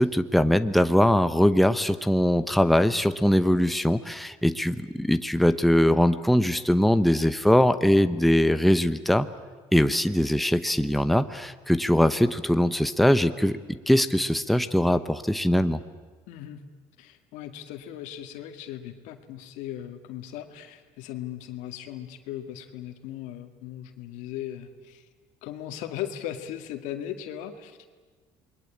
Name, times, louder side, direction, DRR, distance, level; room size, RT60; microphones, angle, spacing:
voice 1, 0.0-9.3 9.7-15.8, equal, ahead, 10 dB, 1.0 m, -22 dB
voice 2, 16.3-16.6 17.0-25.1 25.4-27.9, left 11 dB, 80° left, 7 dB, 2.2 m, -38 dB
28.0 x 21.5 x 8.7 m, 1.4 s
supercardioid pair, 95°, 12 cm